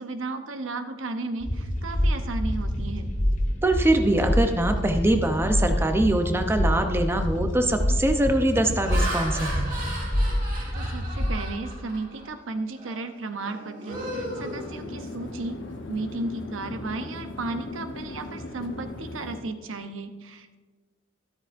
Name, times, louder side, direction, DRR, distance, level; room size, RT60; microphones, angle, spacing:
voice 1, 0.0-3.1 10.7-15.6 15.9-20.5, right 2 dB, 90° right, 9 dB, 0.7 m, -34 dB
sound 1, 1.4-11.3, equal, 40° left, 1.3 m, -26 dB
voice 2, 3.6-9.7, right 1 dB, 10° right, 6 dB, 0.6 m, -23 dB
Laughter, 7.7-7.9 8.5-12.3 12.8-13.0 13.4-15.3, right 1 dB, 45° right, 2.4 m, -36 dB
sound 2, 13.9-19.4, left 2 dB, 70° left, 1.0 m, -38 dB
12.5 x 12.5 x 2.5 m, 1.4 s
head